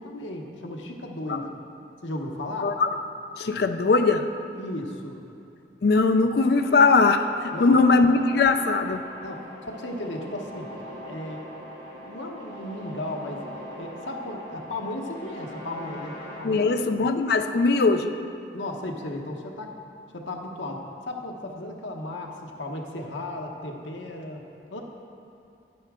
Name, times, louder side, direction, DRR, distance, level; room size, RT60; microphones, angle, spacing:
voice 1, 0.0-1.5 2.0-2.7 4.5-5.2 7.5-7.8 9.2-10.7 11.1-11.5 11.9-13.4 13.8-16.8 18.5-19.7 20.1-24.8, left 1 dB, 85° left, 1 dB, 1.1 m, -35 dB
voice 2, 3.4-4.3 5.8-9.1 16.4-18.1, left 3 dB, 55° left, 8 dB, 0.4 m, -20 dB
sound 1, 6.4-16.4, equal, 35° left, 2.2 m, -42 dB
10.0 x 9.4 x 3.7 m, 2.7 s
head